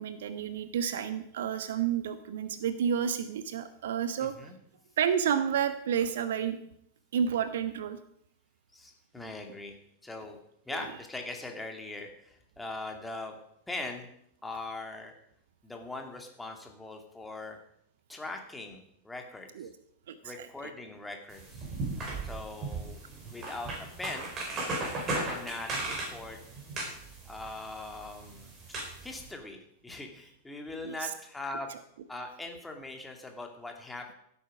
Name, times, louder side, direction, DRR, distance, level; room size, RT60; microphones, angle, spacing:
voice 1, 0.0-4.5 5.0-6.6 7.1-8.0 10.7-10.9 19.5-19.7 20.1-20.7 30.8-31.1 31.7-31.8, right 8 dB, 60° right, 12 dB, 0.9 m, -31 dB
voice 2, 4.2-4.5 8.7-9.7 10.0-10.4 10.7-13.4 13.7-14.1 14.4-15.1 15.6-17.6 18.1-19.5 20.2-21.6 22.2-23.0 23.3-24.3 25.1-26.4 27.3-28.5 29.0-29.6 29.8-31.7 32.1-34.1, left 2 dB, 10° left, 3 dB, 2.5 m, -41 dB
sound 1, 21.3-29.3, right 2 dB, 30° right, 5.1 m, -37 dB
15.5 x 8.6 x 5.3 m, 0.72 s
figure-of-eight pair, 90°, 0 cm